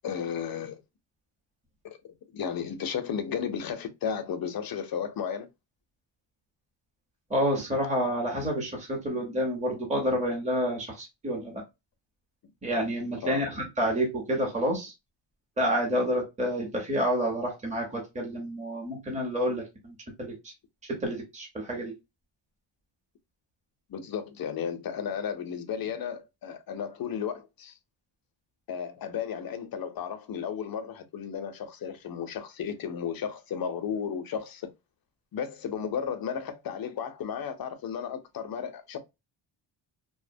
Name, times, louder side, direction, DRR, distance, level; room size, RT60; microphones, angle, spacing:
voice 1, 0.0-0.8 1.8-5.5 13.2-13.5 23.9-27.7 28.7-34.7 35.3-39.0, left 7 dB, 50° left, 0.5 m, -34 dB
voice 2, 7.3-11.6 12.6-14.9 15.6-19.9 21.0-21.9, equal, 15° right, 0.8 m, -29 dB
2.6 x 2.1 x 2.5 m
wide cardioid pair, 160°, 47 cm